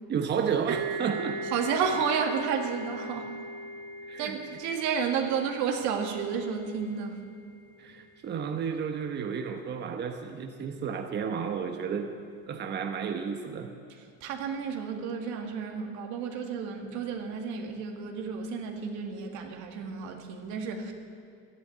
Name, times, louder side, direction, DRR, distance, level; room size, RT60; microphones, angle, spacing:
voice 1, 0.1-1.4 4.1-4.4 7.8-12.1 12.5-13.7, right 6 dB, 35° right, 4 dB, 1.1 m, -32 dB
sound 1, 0.7-8.2, right 3 dB, 55° right, 1.5 m, -39 dB
voice 2, 1.5-3.3 4.2-7.3 14.2-20.9, right 6 dB, 75° right, 3 dB, 2.1 m, -31 dB
13.0 x 11.0 x 9.3 m, 2.2 s
cardioid pair, 125°, 29 cm